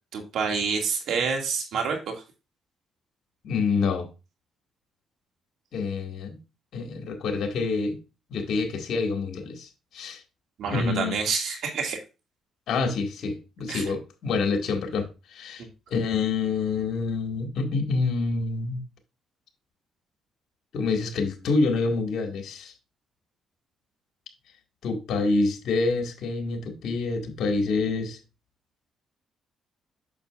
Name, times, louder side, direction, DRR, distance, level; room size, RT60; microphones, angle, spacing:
voice 1, 0.1-2.2 10.6-12.0 13.7-13.8 15.6-15.7, right 5 dB, 75° right, 2.1 m, -28 dB
voice 2, 3.4-4.1 5.7-6.4 6.7-8.0 8.3-10.2 10.7-11.2 12.7-15.7 15.9-18.8 20.7-22.7 24.8-28.2, left 4 dB, 70° left, 2.0 m, -27 dB
8.6 x 6.9 x 2.5 m
cardioid pair, 90°, 0 cm